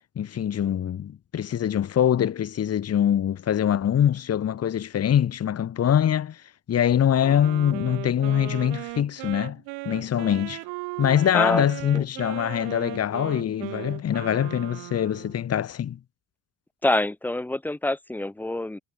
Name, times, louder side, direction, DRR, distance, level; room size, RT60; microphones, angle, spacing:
voice 1, 0.2-6.4 6.7-10.6 11.0-16.0, left 9 dB, 40° left, 4.5 m, -24 dB
Wind instrument woodwind instrument, 7.2-15.4, right 27 dB, 85° right, 2.3 m, -37 dB
voice 2, 11.3-11.6 11.9-12.0 16.8-18.8, left 1 dB, 5° left, 1.3 m, -26 dB
cardioid pair, 135°, 38 cm